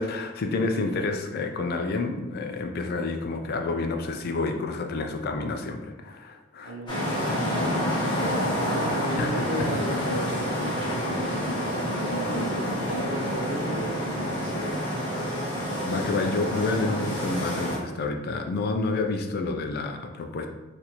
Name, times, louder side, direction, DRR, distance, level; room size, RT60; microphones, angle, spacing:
voice 1, 0.0-6.8 9.2-9.7 15.9-20.5, left 3 dB, 50° left, 5 dB, 0.3 m, -29 dB
voice 2, 6.6-10.6 10.9-14.9, equal, 60° right, 0 dB, 0.6 m, -36 dB
sound 1, 6.9-17.8, equal, 20° left, 1.1 m, -28 dB
4.1 x 2.5 x 2.9 m, 1.1 s
head